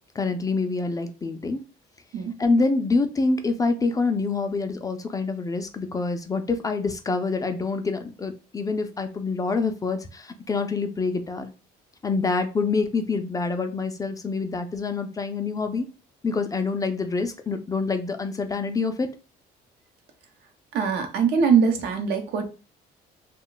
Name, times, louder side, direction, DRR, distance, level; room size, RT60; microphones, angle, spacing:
voice 1, 0.2-1.6 2.4-11.5 12.0-15.9 16.2-19.1, left 4 dB, 20° left, 6 dB, 0.4 m, -26 dB
voice 2, 20.7-22.5, right 6 dB, 75° right, 5 dB, 0.7 m, -22 dB
2.4 x 2.2 x 3.8 m, 0.33 s
cardioid pair, 110°, 17 cm